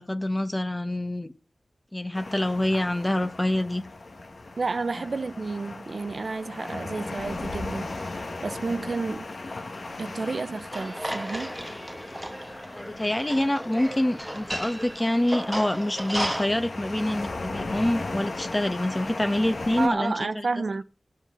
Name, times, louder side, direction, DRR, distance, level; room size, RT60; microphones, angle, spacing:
voice 1, 0.0-1.3 1.9-3.8 12.7-20.5, left 1 dB, 20° left, 1.3 m, -26 dB
sound 1, 2.1-19.9, left 2 dB, 65° left, 1.5 m, -37 dB
voice 2, 4.6-9.3 10.0-11.6 19.8-20.8, right 3 dB, 65° right, 0.6 m, -31 dB
sound 2, 10.7-16.5, equal, 5° right, 1.1 m, -34 dB
20.0 x 7.4 x 3.8 m
cardioid pair, 50°, 0 cm